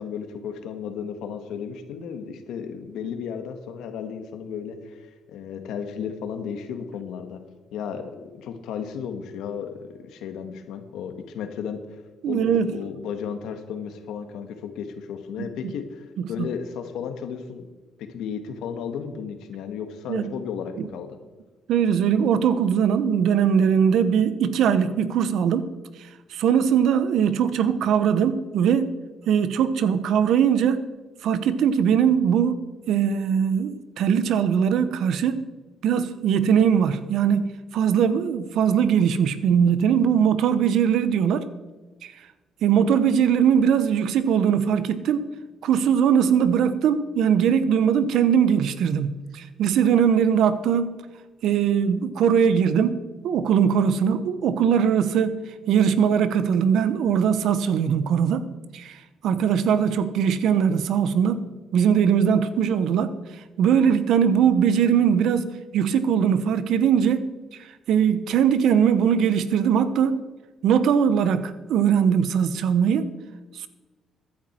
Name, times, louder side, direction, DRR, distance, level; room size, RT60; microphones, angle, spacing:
voice 1, 0.0-7.4 7.7-11.8 12.3-17.7 18.0-21.2, left 7 dB, 85° left, 8 dB, 1.5 m, -34 dB
voice 2, 12.2-12.7 16.4-16.5 20.1-20.3 21.7-25.7 26.3-28.9 29.3-30.9 31.2-32.6 32.9-35.4 35.8-41.5 42.0-42.1 42.6-45.3 45.6-50.9 51.4-55.4 55.7-58.5 58.7-59.0 59.2-61.4 61.7-63.1 63.6-67.3 67.9-70.2 70.6-73.1, right 8 dB, 80° right, 13 dB, 1.0 m, -21 dB
15.0 x 10.5 x 4.5 m, 1.3 s
cardioid pair, 90°, 0 cm